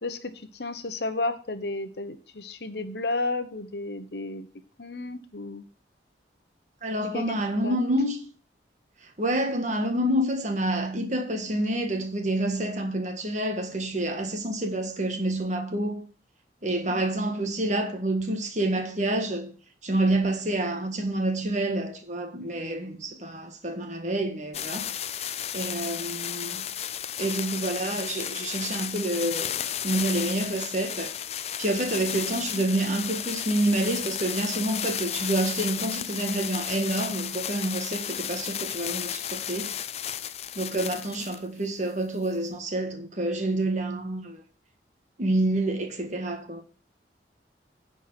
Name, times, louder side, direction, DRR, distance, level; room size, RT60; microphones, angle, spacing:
voice 1, 0.0-4.5 4.8-5.7 7.1-7.7 16.9-17.1 31.8-31.9, left 2 dB, 65° left, 1.0 m, -33 dB
voice 2, 6.8-8.2 9.2-16.0 16.6-19.5 19.8-25.2 25.5-26.7 27.2-31.1 31.6-39.7 40.5-44.4 45.2-46.6, right 1 dB, 40° right, 1.6 m, -28 dB
sound 1, 24.5-41.4 42.2-42.3, left 10 dB, 35° left, 0.4 m, -33 dB
10.0 x 4.7 x 7.5 m
head